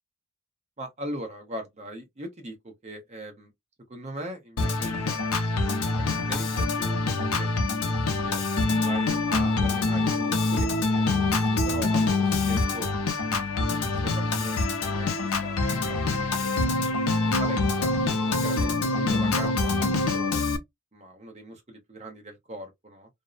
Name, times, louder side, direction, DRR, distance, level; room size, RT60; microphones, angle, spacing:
voice 1, 0.8-3.5 3.9-5.7 6.0-8.4 8.8-11.2 11.7-13.1 13.9-16.9 17.2-17.9 18.4-20.4 20.9-23.1, right 1 dB, 30° right, 0.7 m, -40 dB
Organ, 4.6-20.6, left 3 dB, 75° left, 0.5 m, -25 dB
2.6 x 2.0 x 2.3 m
head